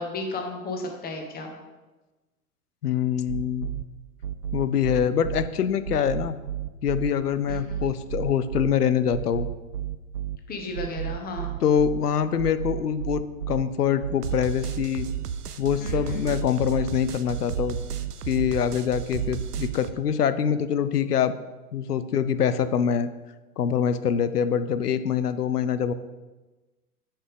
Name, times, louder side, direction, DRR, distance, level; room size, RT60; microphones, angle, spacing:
voice 1, 0.0-1.5 7.5-7.8 10.5-11.5 15.8-16.3, left 2 dB, 20° left, 3 dB, 1.2 m, -34 dB
voice 2, 2.8-3.7 4.5-6.4 6.8-9.5 11.6-15.1 15.6-17.8 18.3-21.3 21.7-23.1 23.6-25.9, left 8 dB, 90° left, 13 dB, 0.5 m, -24 dB
sound 1, 3.3-3.8 4.2-5.5 5.8-7.1 7.5-8.7 9.1-10.4 10.7-12.0 12.4-13.6 14.0-19.9, right 10 dB, 85° right, 0.6 m, -32 dB
6.6 x 5.6 x 3.7 m, 1.2 s
figure-of-eight pair, 95°, 45 cm